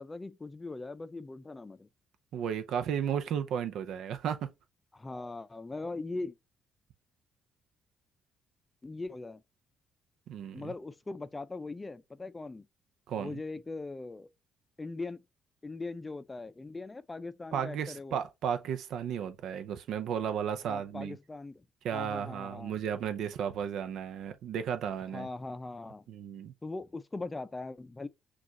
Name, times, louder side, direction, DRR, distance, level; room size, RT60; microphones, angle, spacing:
voice 1, 0.0-1.9 4.9-6.3 8.8-9.4 10.5-12.7 13.1-14.3 14.8-15.2 15.6-18.2 20.7-21.6 21.9-22.8 25.1-26.0 26.6-28.1, left 3 dB, 20° left, 0.5 m, -40 dB
voice 2, 2.3-4.5 10.3-10.7 13.1-13.4 17.5-21.2 21.8-25.3 26.1-26.5, right 8 dB, 75° right, 0.6 m, -34 dB
6.1 x 2.5 x 2.9 m
supercardioid pair, 75°, 0 cm